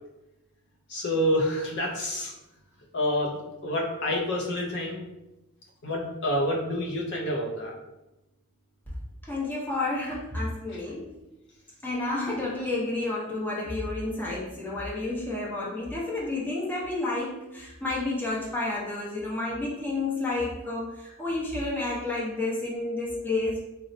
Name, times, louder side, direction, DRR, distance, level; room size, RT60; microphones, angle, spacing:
voice 1, 0.9-2.3 2.9-5.1 5.8-7.7 10.7-10.8, equal, 50° left, -1 dB, 0.5 m, -28 dB
voice 2, 9.2-11.2 11.8-23.6, left 2 dB, 10° left, -6 dB, 0.6 m, -30 dB
4.0 x 2.0 x 2.6 m, 0.97 s
head